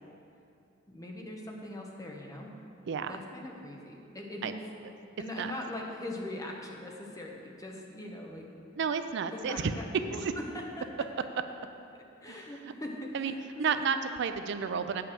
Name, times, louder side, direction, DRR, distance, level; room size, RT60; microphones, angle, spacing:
voice 1, 0.9-2.5 3.1-4.5 5.2-8.5 9.3-9.9 10.1-11.2 12.2-14.0, left 1 dB, 20° left, 0 dB, 1.0 m, -41 dB
voice 2, 2.9-3.2 4.4-4.5 5.4-5.5 8.8-9.7 10.2-10.3 12.3-12.5 13.1-13.3 13.6-15.0, right 6 dB, 60° right, 10 dB, 0.4 m, -31 dB
8.6 x 5.7 x 6.7 m, 2.6 s
head